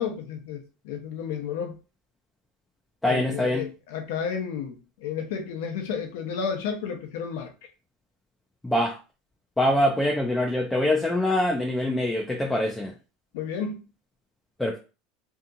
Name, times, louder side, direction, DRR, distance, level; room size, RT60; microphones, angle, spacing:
voice 1, 0.0-1.8 3.1-7.5 13.3-13.8, left 7 dB, 75° left, 0.7 m, -32 dB
voice 2, 3.0-3.7 8.6-8.9 9.6-12.9 14.6-14.8, left 1 dB, 5° left, 0.4 m, -24 dB
2.8 x 2.5 x 2.5 m
supercardioid pair, 125°, 0 cm